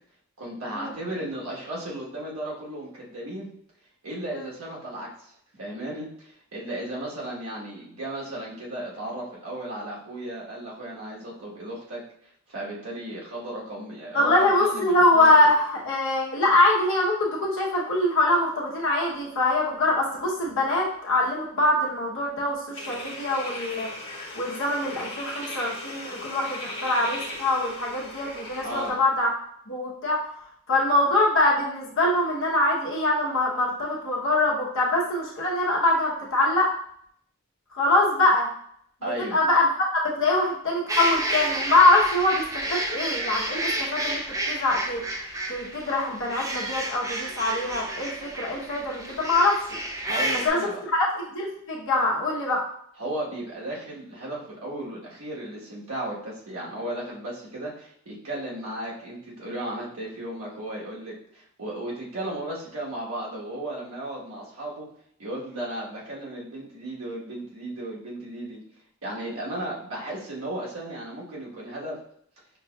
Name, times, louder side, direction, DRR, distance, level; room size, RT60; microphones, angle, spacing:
voice 1, 0.4-3.5 4.0-5.3 5.6-12.0 12.5-15.4 28.6-29.0 39.0-39.4 50.0-50.8 53.0-64.9 65.2-68.6 69.0-72.0, right 1 dB, 80° right, -4 dB, 1.3 m, -35 dB
voice 2, 14.1-23.9 24.3-29.3 29.7-30.2 30.7-36.7 37.7-38.5 39.0-39.7 39.9-45.0 45.5-49.6 50.4-50.6 50.9-52.6, left 2 dB, 60° left, -2 dB, 1.0 m, -23 dB
sound 1, 22.7-28.9, left 1 dB, 25° left, 1.3 m, -38 dB
sound 2, 40.9-50.5, right 1 dB, 15° right, 0.5 m, -30 dB
5.8 x 2.7 x 2.3 m, 0.67 s
head